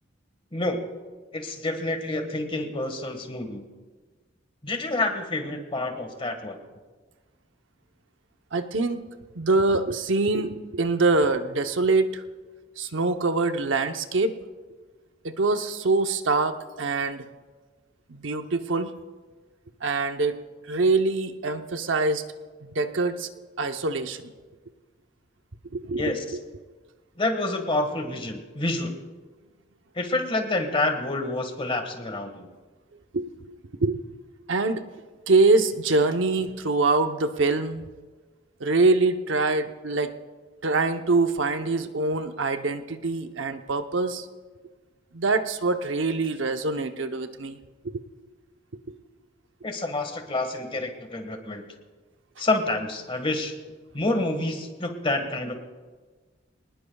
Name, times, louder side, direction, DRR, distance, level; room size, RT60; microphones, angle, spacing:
voice 1, 0.5-0.8 1.3-3.7 4.6-6.6 26.0-26.2 27.2-28.9 29.9-32.5 49.6-51.6 52.4-53.5 53.9-55.5, left 2 dB, 30° left, 6 dB, 1.6 m, -28 dB
voice 2, 8.5-9.0 9.4-12.2 12.8-14.4 15.2-17.3 18.1-18.9 19.8-20.4 20.7-22.3 22.6-23.3 23.6-24.3 25.7-26.4 33.1-33.3 33.8-34.0 34.5-34.9 35.3-37.8 38.6-40.2 40.6-44.3 45.1-47.6 48.9-49.0, right 3 dB, 75° right, 7 dB, 0.8 m, -24 dB
25.0 x 19.5 x 2.3 m, 1.4 s
head